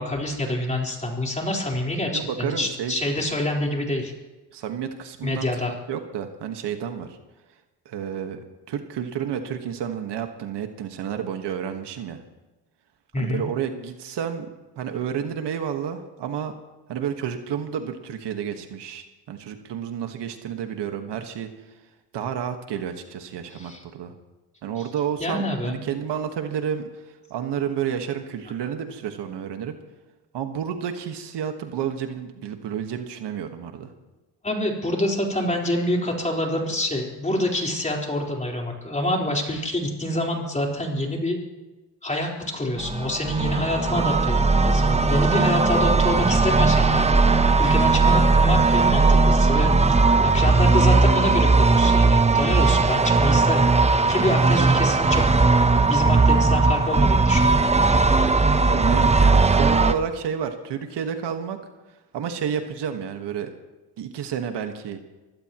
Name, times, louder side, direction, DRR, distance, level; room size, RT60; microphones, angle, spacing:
voice 1, 0.0-4.1 5.2-5.7 13.1-13.4 23.5-23.8 25.2-25.8 34.4-41.4 42.0-47.1 47.6-53.7 54.1-55.2 55.9-57.6, left 1 dB, 15° left, -1 dB, 4.3 m, -26 dB
voice 2, 2.1-2.9 4.5-7.2 7.8-8.4 8.7-12.2 13.2-14.5 14.8-16.5 16.9-21.5 22.1-24.1 24.6-29.8 30.3-33.9 58.5-61.6 62.1-63.5 64.0-65.0, right 8 dB, 70° right, 6 dB, 1.6 m, -30 dB
sound 1, 42.8-59.9, right 3 dB, 15° right, 0.9 m, -18 dB
24.5 x 16.5 x 3.1 m, 1.1 s
cardioid pair, 90°, 42 cm